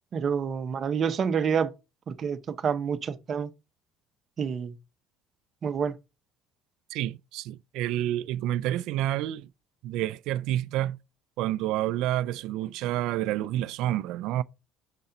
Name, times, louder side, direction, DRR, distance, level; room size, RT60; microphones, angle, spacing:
voice 1, 0.1-1.7 2.1-3.5 4.4-4.7 5.6-5.9, right 7 dB, 35° right, 0.7 m, -28 dB
voice 2, 6.9-9.5 9.8-11.0 11.4-14.4, right 13 dB, 70° right, 0.3 m, -29 dB
6.7 x 4.1 x 3.8 m
cardioid pair, 140°, 0 cm